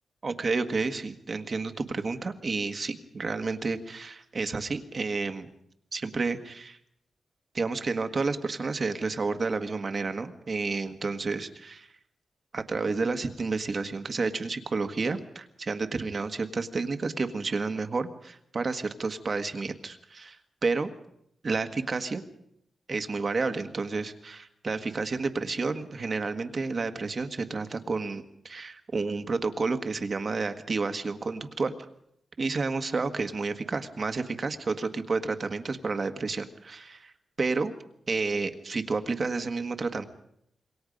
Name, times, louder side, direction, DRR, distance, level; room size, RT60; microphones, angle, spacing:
voice 1, 0.2-5.5 5.9-6.8 7.5-11.9 12.5-20.4 20.6-20.9 21.4-22.2 22.9-31.7 32.4-37.1 37.4-37.7 38.1-40.0, right 4 dB, 35° right, 7 dB, 1.5 m, -30 dB
27.0 x 23.5 x 5.3 m, 0.74 s
wide cardioid pair, 155°, 0 cm